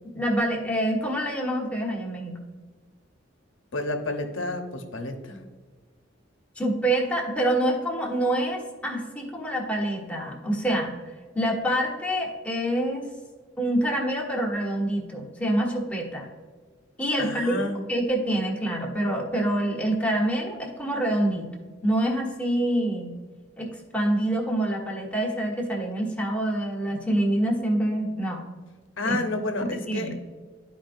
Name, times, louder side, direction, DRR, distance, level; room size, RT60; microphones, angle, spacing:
voice 1, 0.1-2.3 6.6-10.9 11.3-13.1 13.6-16.3 17.0-17.6 17.9-21.5 21.8-23.1 23.6-28.4 29.0-29.2 29.7-30.1, right 1 dB, 5° left, -2 dB, 1.4 m, -26 dB
voice 2, 3.7-5.4 17.2-17.8 29.0-30.1, left 2 dB, 90° left, 4 dB, 1.1 m, -30 dB
12.5 x 5.0 x 2.6 m, 1.4 s
head